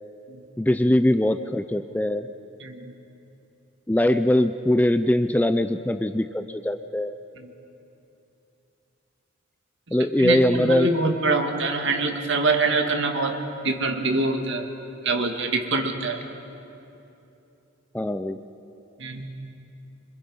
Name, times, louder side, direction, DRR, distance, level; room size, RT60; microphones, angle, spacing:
voice 1, 0.6-2.3 3.9-7.2 9.9-10.9 17.9-18.4, left 1 dB, 10° left, 10 dB, 0.4 m, -22 dB
voice 2, 2.6-2.9 7.4-7.5 10.0-13.4 13.6-14.7 15.0-16.2 19.0-19.3, right 3 dB, 60° right, 3 dB, 2.1 m, -25 dB
26.0 x 25.5 x 5.5 m, 2.9 s
head